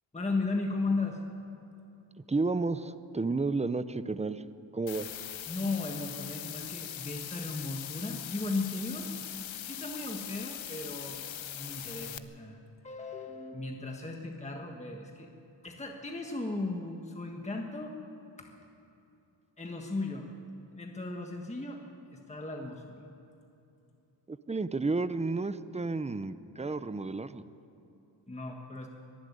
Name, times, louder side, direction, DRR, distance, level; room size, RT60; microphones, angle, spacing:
voice 1, 0.1-1.2 5.5-9.1 9.6-11.2 11.5-12.6 12.8-15.3 15.6-18.0 18.4-18.5 19.6-20.3 20.8-21.8 22.1-23.1 28.3-28.9, left 3 dB, 15° left, 2 dB, 1.4 m, -36 dB
voice 2, 2.3-4.4 4.7-5.1 24.3-27.4, right 3 dB, 15° right, 13 dB, 0.6 m, -31 dB
sound 1, 4.9-12.2, left 10 dB, 85° left, 0.9 m, -41 dB
24.5 x 11.5 x 9.7 m, 2.9 s
wide cardioid pair, 130°, 45 cm